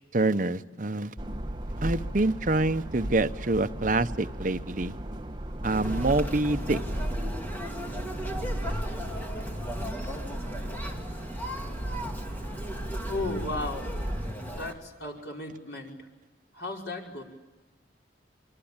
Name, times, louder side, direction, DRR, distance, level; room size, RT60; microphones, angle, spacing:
voice 1, 0.1-1.1 1.8-4.9 5.6-6.8, right 2 dB, 45° right, 9 dB, 0.8 m, -26 dB
sound 1, 1.2-14.3, right 1 dB, 25° right, 1.1 m, -35 dB
Conversation, 5.6-14.7, equal, 10° left, 2.4 m, -37 dB
voice 2, 13.1-14.1 14.5-15.9 16.5-17.2, left 2 dB, 70° left, 0 dB, 5.3 m, -35 dB
25.5 x 24.5 x 8.8 m, 1.2 s
head